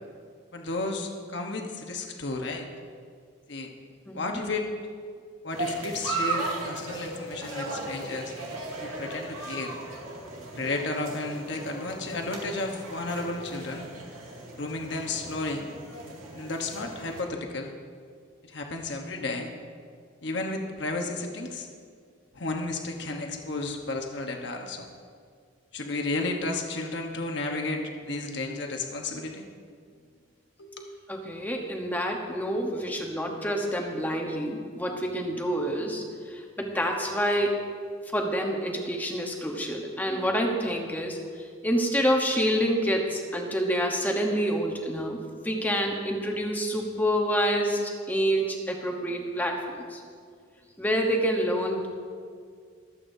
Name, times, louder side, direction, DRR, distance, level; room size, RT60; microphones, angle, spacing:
voice 1, 0.5-2.7 3.5-3.7 4.1-4.7 5.4-8.3 8.8-9.8 10.5-13.9 14.6-15.6 16.3-17.7 18.5-19.5 20.2-21.7 22.3-24.9 25.7-29.5 30.6-30.9, left 2 dB, 55° left, 3 dB, 1.1 m, -33 dB
voice 2, 4.1-4.4 31.1-37.6 38.1-45.2 45.4-50.0 50.8-51.9, equal, 10° left, 1 dB, 0.9 m, -27 dB
sound 1, 5.5-17.2, right 2 dB, 90° right, 2.2 m, -36 dB
23.5 x 8.5 x 2.7 m, 2.1 s
head